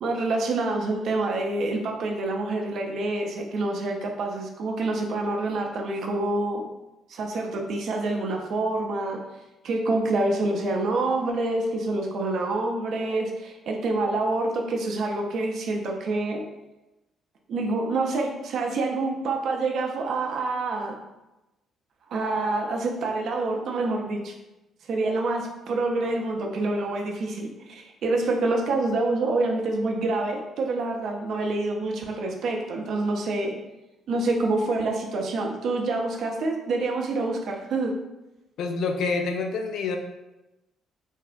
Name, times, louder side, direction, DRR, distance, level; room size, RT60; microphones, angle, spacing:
voice 1, 0.0-6.6 7.1-9.2 9.6-16.4 17.5-20.9 22.1-24.3 24.9-33.6 34.1-38.0, right 2 dB, 60° right, 2 dB, 0.4 m, -27 dB
voice 2, 38.6-40.0, left 4 dB, 65° left, 4 dB, 0.3 m, -27 dB
3.3 x 2.0 x 2.4 m, 1.0 s
hypercardioid pair, 45°, 0 cm